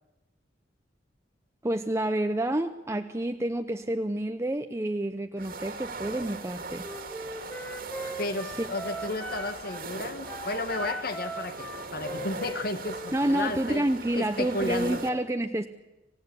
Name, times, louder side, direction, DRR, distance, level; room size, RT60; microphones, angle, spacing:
voice 1, 1.6-6.9 8.6-8.7 13.1-15.7, right 1 dB, 15° right, 7 dB, 0.7 m, -29 dB
sound 1, 5.4-15.1, right 3 dB, 55° right, 2.2 m, -39 dB
Wind instrument woodwind instrument, 6.8-9.9 10.2-13.6, right 1 dB, 10° left, 2.2 m, -40 dB
voice 2, 8.2-13.8 14.1-15.0, left 2 dB, 55° left, 9 dB, 1.4 m, -33 dB
25.5 x 16.0 x 9.7 m, 1.0 s
head